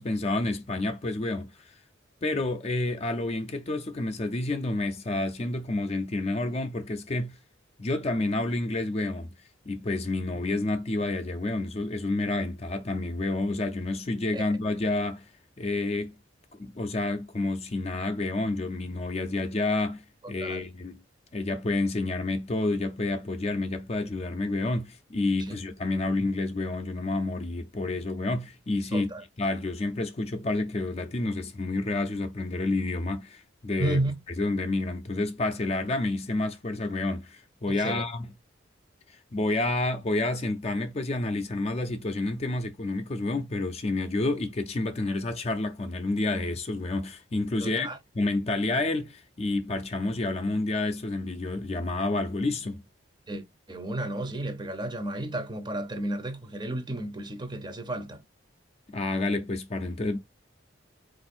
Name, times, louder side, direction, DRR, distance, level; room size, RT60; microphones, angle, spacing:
voice 1, 0.0-1.7 2.2-7.4 7.8-9.3 9.7-15.3 15.6-16.1 16.6-21.0 21.3-29.1 29.4-34.0 34.4-38.3 39.3-47.9 48.1-52.8 58.9-60.2, left 2 dB, 30° left, 0.5 m, -29 dB
voice 2, 28.9-29.2 33.8-34.2 37.7-38.0 47.6-48.0 53.3-58.2, right 1 dB, 20° right, 0.6 m, -32 dB
4.3 x 2.5 x 4.2 m
head